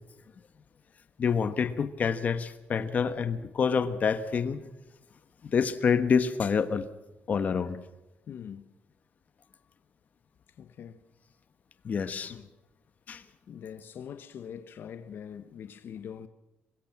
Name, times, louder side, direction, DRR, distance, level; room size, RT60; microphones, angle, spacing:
voice 1, 1.2-4.7 5.4-6.9 7.3-7.8 11.8-12.4 13.1-13.2, left 6 dB, 40° left, 1.2 m, -27 dB
voice 2, 8.3-8.6 10.6-11.0 12.3-12.5 13.5-16.3, left 8 dB, 60° left, 1.1 m, -43 dB
23.5 x 21.0 x 5.9 m
cardioid pair, 165°, 4 cm